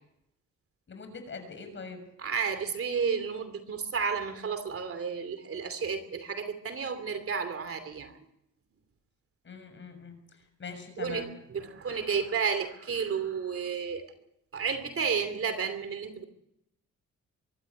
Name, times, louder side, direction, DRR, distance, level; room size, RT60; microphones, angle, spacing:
voice 1, 0.9-2.0 9.4-10.2 10.6-11.3, left 4 dB, 40° left, 7 dB, 6.7 m, -42 dB
voice 2, 2.2-8.2 11.0-14.1 14.5-16.2, right 6 dB, 45° right, 10 dB, 2.9 m, -32 dB
24.0 x 12.5 x 9.9 m, 0.80 s
cardioid pair, 90°, 30 cm